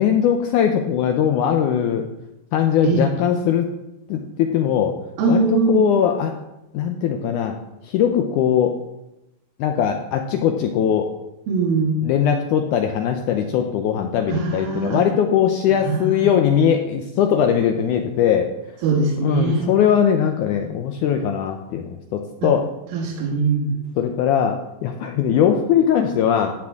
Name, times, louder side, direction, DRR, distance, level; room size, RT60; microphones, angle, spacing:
voice 1, 0.0-2.1 2.5-3.7 4.1-5.0 5.3-6.4 6.7-7.6 7.8-8.8 9.6-11.1 12.0-18.5 19.2-22.7 24.0-26.5, left 8 dB, 85° left, 5 dB, 1.8 m, -20 dB
voice 2, 5.2-5.8 11.5-12.0 14.3-15.0 15.7-16.3 18.8-19.7 22.4-22.5 22.9-23.8, right 4 dB, 75° right, -4 dB, 3.5 m, -21 dB
14.5 x 8.6 x 3.6 m, 0.90 s
omnidirectional pair, 4.4 m